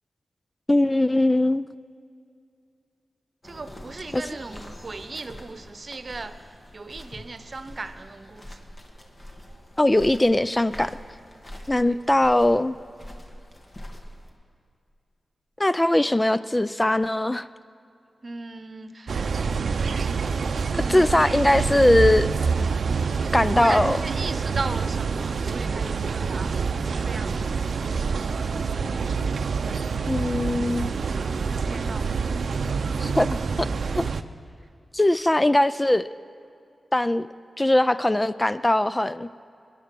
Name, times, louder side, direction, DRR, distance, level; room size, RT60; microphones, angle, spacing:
voice 1, 0.7-1.6 4.1-4.2 9.8-10.9 11.7-12.8 15.6-17.5 20.7-22.3 23.3-24.0 30.1-31.0 33.0-33.4 33.9-34.0 34.9-36.1 36.9-37.3 37.6-39.3, left 1 dB, 20° left, 14 dB, 0.4 m, -20 dB
Walking through the forest, 3.4-14.3, equal, 40° left, 2.0 m, -44 dB
voice 2, 3.4-8.6 11.8-12.0 16.0-16.1 18.2-19.3 20.7-21.6 23.5-26.6 27.1-27.4 31.4-32.1, right 3 dB, 50° right, 10 dB, 0.9 m, -37 dB
sound 1, 19.1-34.2, right 5 dB, 75° right, 0.6 m, -26 dB
21.5 x 10.5 x 6.1 m, 2.4 s
cardioid pair, 55°, 0 cm